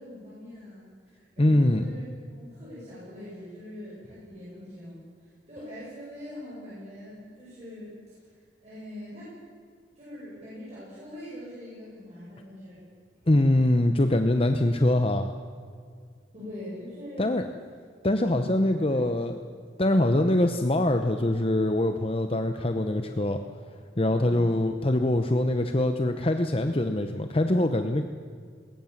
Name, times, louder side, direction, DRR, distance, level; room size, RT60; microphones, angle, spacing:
voice 1, 0.0-7.9 8.6-9.3 9.9-12.8 16.3-17.3 18.4-19.2 24.1-24.5, left 1 dB, 35° right, -9 dB, 7.9 m, -43 dB
voice 2, 1.4-1.8 13.3-15.3 17.2-17.4 18.0-19.4 19.8-23.4 24.0-28.0, left 1 dB, 30° left, 7 dB, 0.8 m, -23 dB
20.5 x 18.5 x 7.3 m, 2.1 s
head